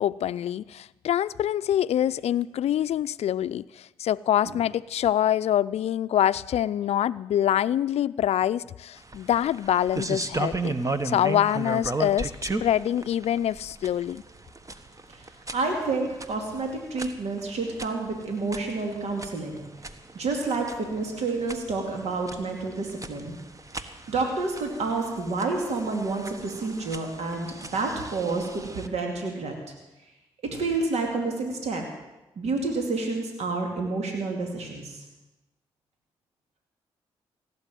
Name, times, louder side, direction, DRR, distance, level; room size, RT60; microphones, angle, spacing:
voice 1, 0.0-10.8 11.0-12.3 12.6-14.2, left 11 dB, 65° left, 0.5 m, -25 dB
sound 1, 9.0-28.9, right 3 dB, 30° right, 1.3 m, -36 dB
voice 2, 15.1-23.4 24.1-29.5 30.5-31.8 32.4-35.0, right 3 dB, 70° right, 2.5 m, -29 dB
17.0 x 8.5 x 9.1 m
hypercardioid pair, 45°, 12 cm